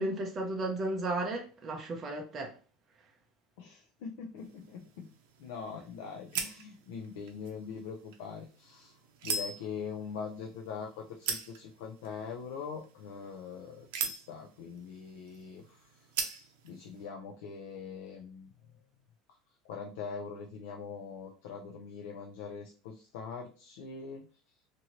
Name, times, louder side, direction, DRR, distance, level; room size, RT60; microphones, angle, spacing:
voice 1, 0.0-2.5, right 2 dB, 20° right, 0.5 m, -34 dB
voice 2, 3.6-5.1 5.4-9.0 9.2-16.4 16.6-18.5 19.6-24.2, left 6 dB, 90° left, 0.5 m, -43 dB
sound 1, 4.4-17.1, right 5 dB, 70° right, 0.6 m, -42 dB
2.8 x 2.6 x 2.9 m
cardioid pair, 180°, 0 cm